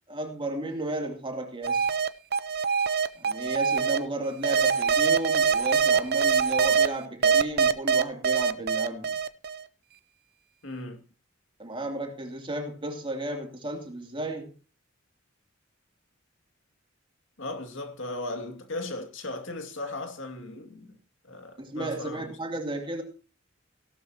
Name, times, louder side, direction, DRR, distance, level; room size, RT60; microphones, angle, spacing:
voice 1, 0.1-1.9 3.1-9.1 11.6-14.5 21.6-23.0, right 1 dB, 25° right, 2.8 m, -33 dB
sound 1, 1.6-4.0 4.4-6.9 7.2-9.6, right 6 dB, 50° right, 0.7 m, -23 dB
voice 2, 10.6-11.0 17.4-21.0 21.2-22.3, left 2 dB, 65° left, 2.3 m, -37 dB
17.0 x 12.5 x 2.9 m
head